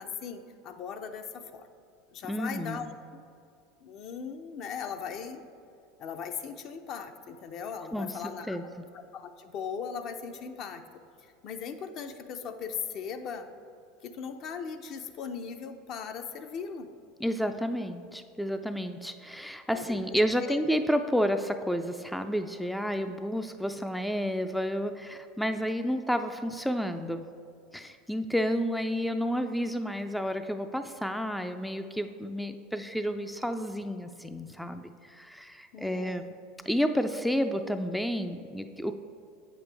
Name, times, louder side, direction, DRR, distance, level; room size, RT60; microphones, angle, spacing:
voice 1, 0.0-1.7 2.1-2.9 3.1-3.2 3.8-5.4 6.0-10.8 11.2-13.5 14.0-16.9 19.7-20.6 35.7-36.3, left 6 dB, 50° left, 7 dB, 0.6 m, -39 dB
voice 2, 2.3-2.9 7.9-8.2 8.5-8.6 17.2-27.3 27.7-36.2 36.7-39.0, equal, ahead, 8 dB, 0.3 m, -30 dB
8.0 x 7.0 x 3.4 m, 2.5 s
hypercardioid pair, 95°, 0 cm